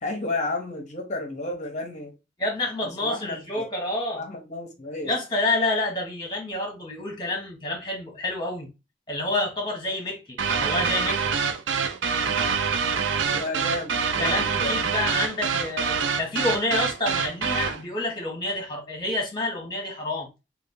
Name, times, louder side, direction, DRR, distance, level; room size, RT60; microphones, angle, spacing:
voice 1, 0.0-2.1 2.8-3.6 4.2-5.2 13.3-14.8, left 2 dB, 40° left, 0.7 m, -32 dB
voice 2, 2.4-4.2 5.0-8.7 9.1-11.4 14.2-20.3, left 2 dB, 25° left, 1.1 m, -28 dB
sound 1, 10.4-17.8, right 6 dB, 85° right, 0.4 m, -25 dB
3.2 x 2.3 x 3.6 m
head